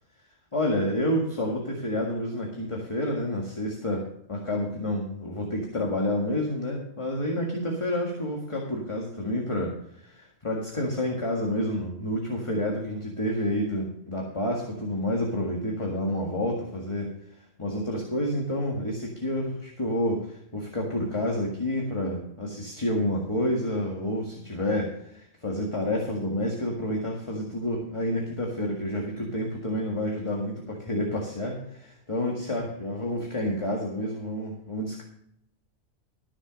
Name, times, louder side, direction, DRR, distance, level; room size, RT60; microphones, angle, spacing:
voice 1, 0.5-17.1 17.6-35.0, left 1 dB, 20° left, -1 dB, 1.8 m, -29 dB
13.5 x 7.2 x 5.2 m, 0.71 s
omnidirectional pair, 1.4 m